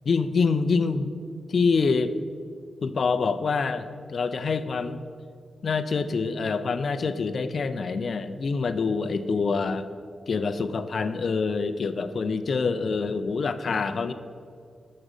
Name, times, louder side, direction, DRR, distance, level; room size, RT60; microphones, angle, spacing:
voice 1, 0.1-1.1 1.5-2.1 2.8-5.0 5.6-9.9 10.3-14.1, left 4 dB, 60° left, 10 dB, 0.4 m, -26 dB
6.3 x 4.9 x 6.5 m, 2.2 s
cardioid pair, 70°, 0 cm